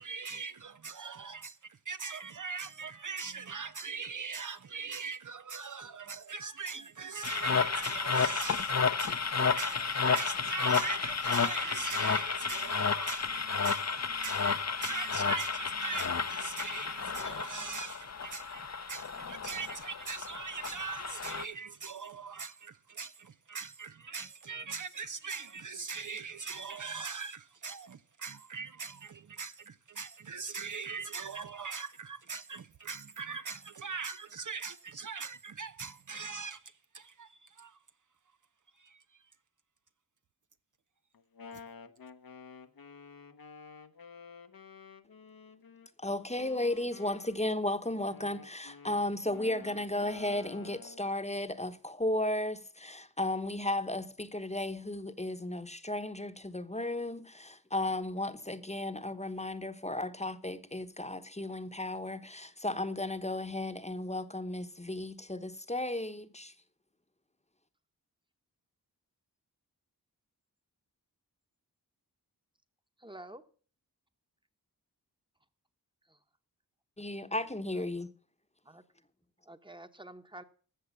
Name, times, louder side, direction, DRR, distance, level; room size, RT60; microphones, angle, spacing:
voice 1, 0.0-37.8 38.8-39.0 41.5-41.6, right 5 dB, 55° right, 0.6 m, -41 dB
sound 1, 7.2-21.4, left 5 dB, 45° left, 0.7 m, -32 dB
Wind instrument woodwind instrument, 41.1-45.9 46.4-51.1, left 5 dB, 65° left, 1.0 m, -51 dB
voice 2, 46.0-66.5 77.0-78.1, left 1 dB, 15° left, 1.0 m, -34 dB
voice 3, 73.0-73.4 76.1-76.2 78.6-78.8 79.5-80.4, right 1 dB, 15° right, 1.1 m, -48 dB
14.5 x 6.5 x 7.1 m
wide cardioid pair, 60°, 37 cm